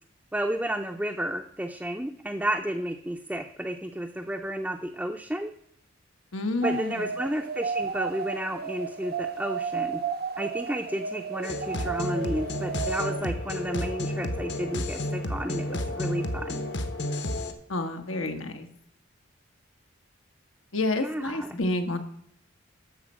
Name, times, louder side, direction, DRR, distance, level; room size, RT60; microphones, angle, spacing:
voice 1, 0.3-5.5 6.6-10.0 10.4-16.6 20.9-21.6, right 1 dB, 5° right, 2 dB, 0.5 m, -32 dB
voice 2, 6.3-7.0 17.7-18.7 20.7-22.0, left 2 dB, 85° left, 6 dB, 1.5 m, -29 dB
sound 1, 6.6-13.2, right 5 dB, 50° right, 0.7 m, -33 dB
sound 2, 11.4-17.5, left 1 dB, 60° left, 1.1 m, -31 dB
13.5 x 4.5 x 7.4 m, 0.71 s
head